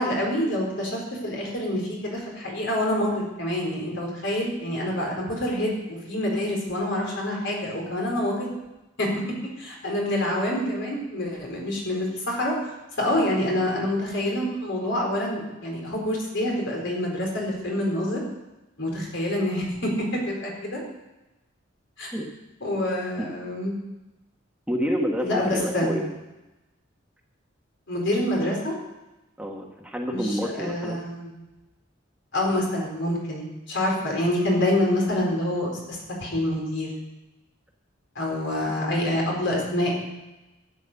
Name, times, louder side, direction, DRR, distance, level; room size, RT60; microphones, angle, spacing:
voice 1, 0.0-8.5 9.0-9.1 9.6-18.2 18.8-20.8 22.0-22.1 22.6-23.7 25.2-26.0 27.9-28.7 30.1-31.3 32.3-36.9 38.1-39.9, left 1 dB, 65° left, -1 dB, 4.3 m, -27 dB
voice 2, 24.7-26.1 29.4-31.0, equal, 5° right, 1 dB, 1.3 m, -28 dB
12.0 x 8.7 x 6.8 m, 1.0 s
head